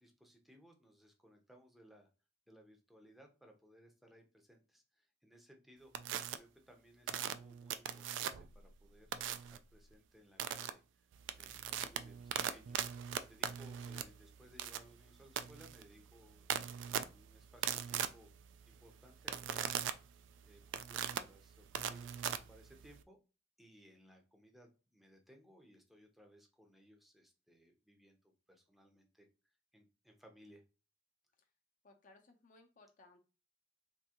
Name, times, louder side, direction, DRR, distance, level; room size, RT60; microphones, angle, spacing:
voice 1, 0.0-2.1 2.5-11.1 11.4-18.3 18.7-23.2 23.6-30.6, equal, ahead, 3 dB, 0.6 m, -63 dB
sound 1, 5.9-6.4 7.1-8.6 9.1-9.6 10.4-10.7 11.1-23.0, right 9 dB, 80° right, 0.3 m, -40 dB
voice 2, 31.8-33.2, left 2 dB, 45° left, 4 dB, 0.7 m, -63 dB
3.6 x 2.6 x 2.8 m, 0.32 s
head